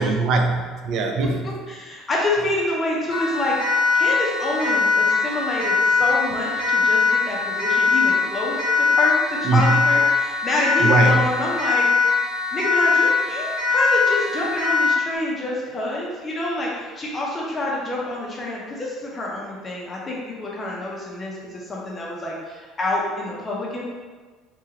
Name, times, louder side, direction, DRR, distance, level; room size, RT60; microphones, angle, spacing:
voice 1, 0.0-1.5 9.4-9.8 10.8-11.3, right 3 dB, 55° right, 4 dB, 0.3 m, -20 dB
voice 2, 1.4-3.6 3.9-11.9 12.5-23.8, left 1 dB, 20° left, -4 dB, 0.5 m, -27 dB
Siren, 3.1-15.1, left 5 dB, 35° right, 1.2 m, -21 dB
2.9 x 2.5 x 2.8 m, 1.4 s
cardioid pair, 160°, 0 cm